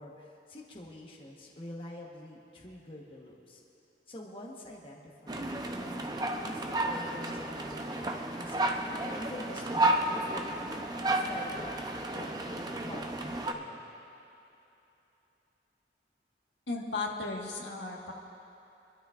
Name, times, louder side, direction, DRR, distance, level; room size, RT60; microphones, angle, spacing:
voice 1, 0.0-3.6 4.1-6.0 6.4-10.7 11.0-11.8 12.1-13.9, left 1 dB, 30° left, -2 dB, 1.2 m, -46 dB
sound 1, 5.3-13.5, right 2 dB, 20° right, 0.7 m, -32 dB
voice 2, 16.7-18.1, left 3 dB, 85° left, -1 dB, 1.6 m, -35 dB
26.5 x 12.5 x 2.5 m, 2.9 s
head